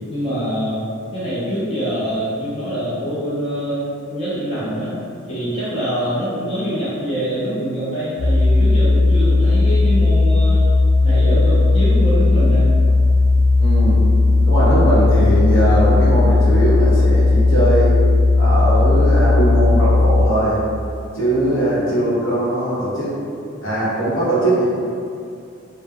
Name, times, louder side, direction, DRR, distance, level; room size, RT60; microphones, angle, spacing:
voice 1, 0.1-0.8 1.1-4.9 5.3-10.7 11.0-12.7, equal, 30° left, -12 dB, 0.6 m, -24 dB
sound 1, 8.2-20.3, left 3 dB, 85° left, 0.4 m, -15 dB
voice 2, 13.6-14.0 14.5-17.9 18.4-20.6 21.1-23.1 23.6-24.6, right 1 dB, 65° left, -9 dB, 0.9 m, -20 dB
2.2 x 2.1 x 3.4 m, 2.5 s
head